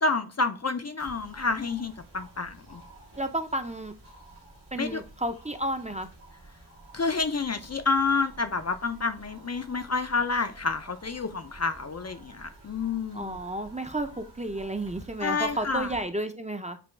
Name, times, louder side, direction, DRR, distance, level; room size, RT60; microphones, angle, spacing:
voice 1, 0.0-2.8 4.7-5.0 6.9-13.4 15.2-15.9, left 4 dB, 40° left, 0.4 m, -29 dB
sound 1, 1.0-16.0, right 2 dB, 85° right, 1.7 m, -51 dB
voice 2, 3.2-3.9 4.7-6.1 13.1-16.8, right 1 dB, 20° right, 0.5 m, -32 dB
6.8 x 2.3 x 3.3 m
wide cardioid pair, 45°, 40 cm